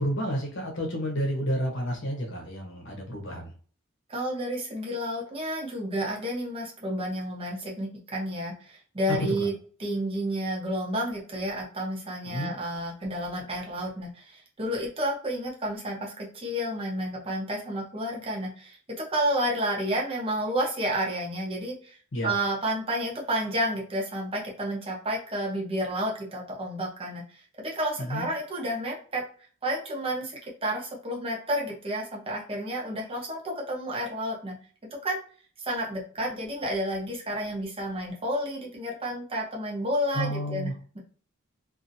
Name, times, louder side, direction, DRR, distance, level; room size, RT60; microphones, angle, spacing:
voice 1, 0.0-3.5 9.4-9.5 12.2-12.5 22.1-22.3 28.0-28.3 40.1-40.7, equal, 60° left, 1 dB, 0.9 m, -30 dB
voice 2, 4.1-9.5 9.8-22.0 22.2-27.2 27.6-29.2 29.6-34.6 35.0-35.2 35.7-41.0, equal, 25° right, -2 dB, 0.8 m, -31 dB
2.7 x 2.6 x 2.6 m, 0.42 s
head